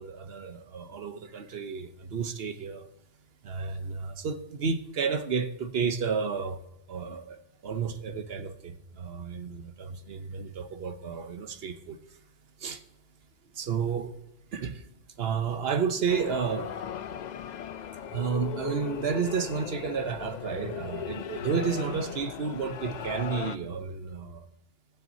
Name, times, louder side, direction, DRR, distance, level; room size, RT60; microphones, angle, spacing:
voice 1, 0.0-2.9 3.4-6.6 6.9-12.0 12.6-12.8 13.6-14.1 14.5-14.8 15.2-16.7 18.1-24.5, right 6 dB, 65° right, 1.0 m, -31 dB
sound 1, 16.1-23.6, left 8 dB, 55° left, 0.5 m, -38 dB
18.5 x 7.5 x 2.7 m
omnidirectional pair, 1.1 m